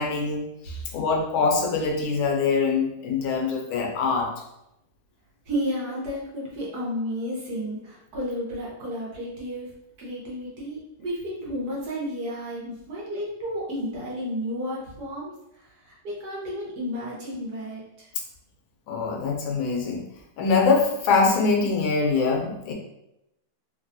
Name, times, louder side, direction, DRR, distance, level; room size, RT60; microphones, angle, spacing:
voice 1, 0.0-4.3 18.9-20.1 20.4-22.7, left 4 dB, 85° left, 1 dB, 1.4 m, -23 dB
voice 2, 5.4-9.7 10.0-18.1, equal, 60° right, -5 dB, 1.2 m, -32 dB
3.5 x 2.2 x 2.5 m, 0.85 s
omnidirectional pair, 2.1 m